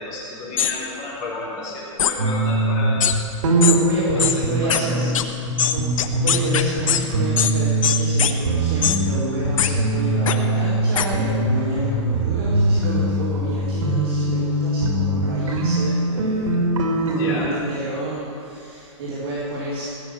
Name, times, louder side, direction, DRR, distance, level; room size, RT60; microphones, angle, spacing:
voice 1, 0.0-3.1 4.1-5.1 17.0-17.6, left 2 dB, 25° left, -6 dB, 4.1 m, -32 dB
sound 1, 0.6-0.7 2.0-2.1 3.0-3.1 3.6-3.8 4.2-4.3 4.7-4.8 5.1-5.2 5.6-7.0 7.4-7.5 7.8-8.3 8.8-9.0 9.6-9.7 10.3-10.4 10.9-11.1, left 9 dB, 85° left, 1.1 m, -20 dB
sound 2, 2.2-5.5 5.8-8.2 8.4-10.8 11.1-17.5, right 1 dB, 85° right, 2.6 m, -22 dB
voice 2, 3.5-5.2 5.7-19.8, right 2 dB, 50° right, -10 dB, 4.1 m, -30 dB
17.0 x 7.1 x 9.2 m, 2.6 s
supercardioid pair, 180°, 17 cm